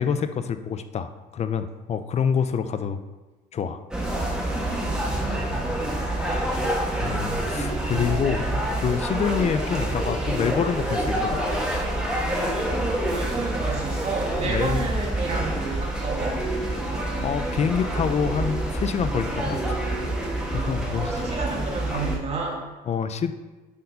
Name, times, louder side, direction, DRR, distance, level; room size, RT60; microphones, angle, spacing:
voice 1, 0.0-3.0 3.5-3.8 7.0-11.4 14.4-14.9 17.2-19.8 20.5-21.2 21.9-22.0 22.9-23.3, left 7 dB, 40° left, 10 dB, 0.5 m, -27 dB
sound 1, 3.9-22.2, right 1 dB, 5° right, 1.6 m, -27 dB
voice 2, 4.9-5.7 13.1-16.4 20.8-22.7, right 4 dB, 40° right, -2 dB, 1.7 m, -31 dB
8.5 x 4.3 x 5.3 m, 1.2 s
cardioid pair, 110°, 17 cm